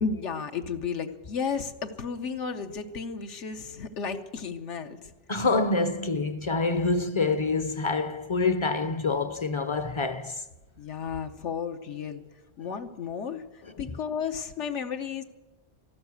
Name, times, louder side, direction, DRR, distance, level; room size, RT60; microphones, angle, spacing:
voice 1, 0.0-5.1 10.8-12.2 12.6-15.2, left 6 dB, 85° left, 1.2 m, -33 dB
voice 2, 5.3-10.4, left 3 dB, 35° left, 0.5 m, -26 dB
13.5 x 13.0 x 8.2 m
omnidirectional pair, 1.2 m